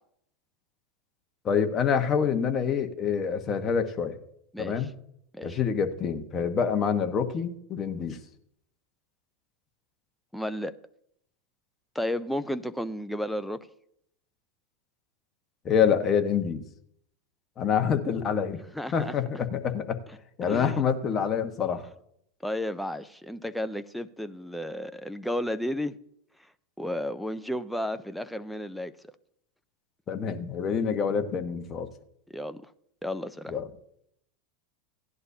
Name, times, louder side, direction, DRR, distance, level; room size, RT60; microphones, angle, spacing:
voice 1, 1.4-4.2 4.6-4.9 5.4-8.2 15.6-16.6 17.6-18.6 18.9-20.0 20.4-21.8 30.1-31.9 33.5-33.7, left 7 dB, 25° left, 1.2 m, -26 dB
voice 2, 4.5-4.9 5.3-5.6 10.3-10.7 11.9-13.6 18.7-19.1 20.5-20.8 22.4-26.0 26.8-28.9 32.3-32.7 33.0-33.6, left 1 dB, ahead, 0.5 m, -33 dB
17.0 x 11.0 x 2.8 m
supercardioid pair, 140°, 0 cm